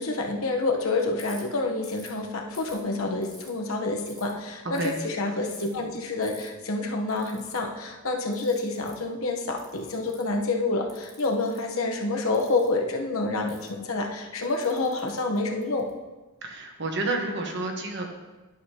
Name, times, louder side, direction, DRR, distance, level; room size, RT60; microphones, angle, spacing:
voice 1, 0.0-15.9, left 3 dB, 80° left, 2 dB, 1.0 m, -28 dB
Ratchet pawl, 1.2-1.4 1.8-2.1 2.5-3.5 4.0-4.3 4.7-5.0 5.4-5.7 6.2-6.5 7.1-7.6 8.3-9.0 9.6-10.3 10.9-11.6 12.3-12.7 13.5-13.7 14.4-15.9, left 1 dB, ahead, 1.5 m, -49 dB
voice 2, 4.6-5.0 16.4-18.1, right 2 dB, 55° right, 2 dB, 1.1 m, -30 dB
11.0 x 6.4 x 2.9 m, 1.2 s
head